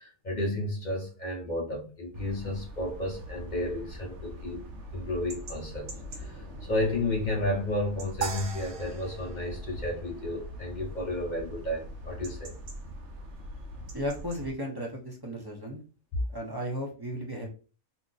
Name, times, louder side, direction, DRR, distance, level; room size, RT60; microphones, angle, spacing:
voice 1, 0.0-4.6 4.9-6.4 6.7-12.6 16.1-16.2, left 1 dB, 45° left, 0.7 m, -32 dB
sound 1, 2.1-14.5, equal, 60° right, 0.9 m, -43 dB
sound 2, 8.2-10.6, right 7 dB, 80° right, 1.2 m, -39 dB
voice 2, 13.9-15.8 16.3-17.5, equal, 25° right, 0.5 m, -35 dB
2.8 x 2.4 x 3.8 m
omnidirectional pair, 1.5 m